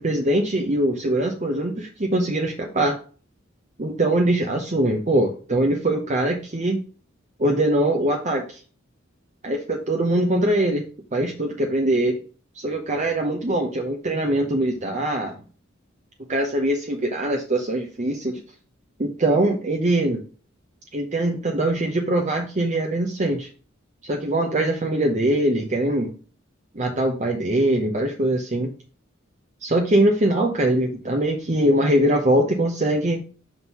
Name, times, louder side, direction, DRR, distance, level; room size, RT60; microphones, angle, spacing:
voice 1, 0.0-3.0 3.8-6.8 7.4-8.6 9.4-10.8 11.1-12.2 12.6-15.4 16.3-18.4 19.0-20.2 20.9-23.5 24.0-26.1 26.7-28.7 29.6-33.2, right 1 dB, 40° right, 2 dB, 0.9 m, -22 dB
6.2 x 3.8 x 5.4 m, 0.37 s
head